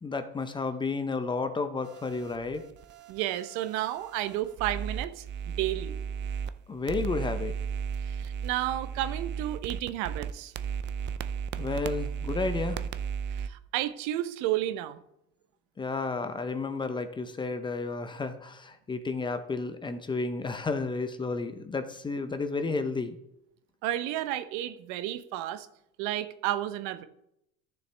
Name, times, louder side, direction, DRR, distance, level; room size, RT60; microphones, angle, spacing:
voice 1, 0.0-2.7 6.7-7.5 11.6-12.8 15.8-23.2, left 3 dB, 15° left, 9 dB, 0.7 m, -32 dB
sound 1, 1.8-6.5 6.9-13.5, right 7 dB, 35° right, 0.5 m, -35 dB
voice 2, 3.1-6.0 8.1-10.5 13.4-15.0 23.8-25.7 26.0-27.0, right 13 dB, 60° right, 12 dB, 0.9 m, -32 dB
13.5 x 6.8 x 3.4 m, 0.80 s
supercardioid pair, 125°, 33 cm